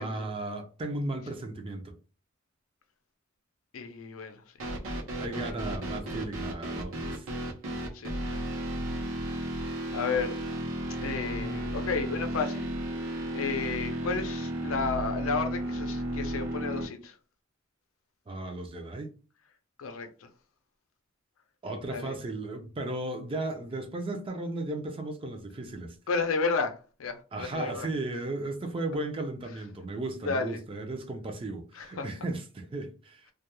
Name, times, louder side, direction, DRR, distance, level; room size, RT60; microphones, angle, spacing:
voice 1, 0.0-2.0 5.2-7.3 18.3-19.1 21.6-26.0 27.3-33.2, right 2 dB, 25° right, 0.4 m, -35 dB
voice 2, 3.7-4.4 7.9-8.4 9.9-10.4 11.0-12.7 13.3-17.1 19.8-20.3 21.9-22.1 26.1-27.9 30.2-30.6 31.7-32.1, left 4 dB, 85° left, 0.5 m, -32 dB
sound 1, 4.6-16.9, right 1 dB, 90° right, 0.7 m, -34 dB
2.3 x 2.2 x 2.9 m
head